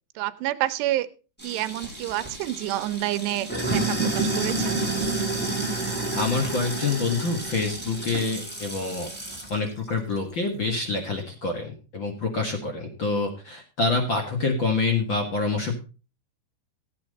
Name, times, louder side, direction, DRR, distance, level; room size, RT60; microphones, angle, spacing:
voice 1, 0.2-1.1 1.4-4.8, right 15 dB, 80° right, 10 dB, 2.8 m, -28 dB
Sink (filling or washing), 1.4-9.5, right 3 dB, ahead, 3.7 m, -29 dB
voice 2, 5.9-9.1 9.5-15.8, left 3 dB, 65° left, 3 dB, 1.1 m, -27 dB
15.0 x 8.8 x 4.1 m, 0.34 s
omnidirectional pair, 5.0 m